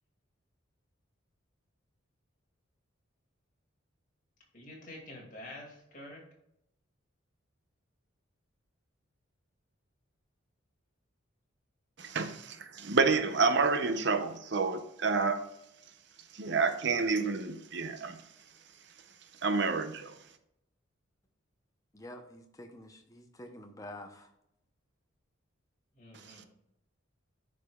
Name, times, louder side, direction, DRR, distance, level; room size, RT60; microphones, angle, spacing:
voice 1, 4.5-6.2 25.9-26.5, left 1 dB, 40° left, 2.1 m, -47 dB
voice 2, 12.0-15.5 16.3-18.2 19.4-20.1, right 4 dB, 55° right, 0.6 m, -29 dB
voice 3, 21.9-24.3, left 1 dB, 15° left, 0.7 m, -48 dB
10.5 x 5.0 x 2.3 m
head